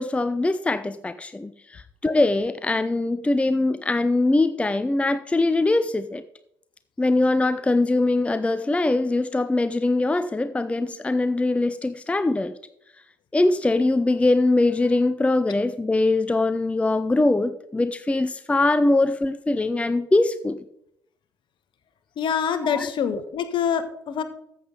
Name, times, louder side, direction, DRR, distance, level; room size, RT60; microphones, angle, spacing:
voice 1, 0.0-6.2 7.0-12.5 13.3-20.6 22.6-22.9, left 2 dB, 10° left, 11 dB, 0.6 m, -22 dB
voice 2, 22.2-24.2, left 7 dB, 50° left, 11 dB, 1.2 m, -25 dB
14.0 x 7.7 x 3.9 m, 0.75 s
figure-of-eight pair, 50°, 11 cm